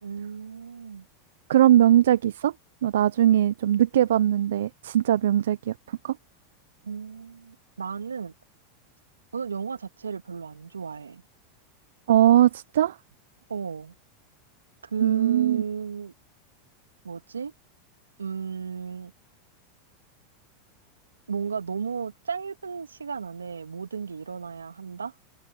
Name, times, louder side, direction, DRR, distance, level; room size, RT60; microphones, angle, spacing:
voice 1, 0.0-1.1 6.8-8.3 9.3-11.2 13.5-13.9 14.8-16.1 17.0-17.5 18.2-19.1 21.3-25.1, right 6 dB, 90° right, 2.3 m, -34 dB
voice 2, 1.5-2.5 2.8-6.2 12.1-13.0 15.0-15.6, right 11 dB, 75° right, 0.8 m, -20 dB
open air
hypercardioid pair, 95°, 0 cm